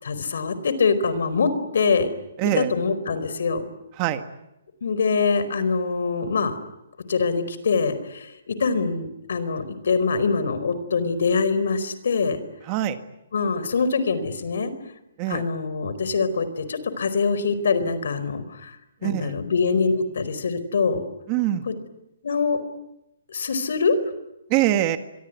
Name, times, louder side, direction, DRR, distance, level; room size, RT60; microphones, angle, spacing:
voice 1, 0.0-2.1 2.6-3.7 4.8-6.6 7.1-12.4 13.3-14.7 15.3-18.7 19.0-21.0 21.7-21.8 22.2-22.6 23.3-23.9, left 4 dB, 65° left, 13 dB, 4.5 m, -24 dB
voice 2, 2.4-2.7 4.0-4.2 12.6-13.0 15.2-15.5 19.0-19.4 21.3-21.7 24.5-25.0, right 13 dB, 20° right, 9 dB, 1.7 m, -23 dB
26.5 x 22.5 x 9.5 m, 0.88 s
hypercardioid pair, 175°, 0 cm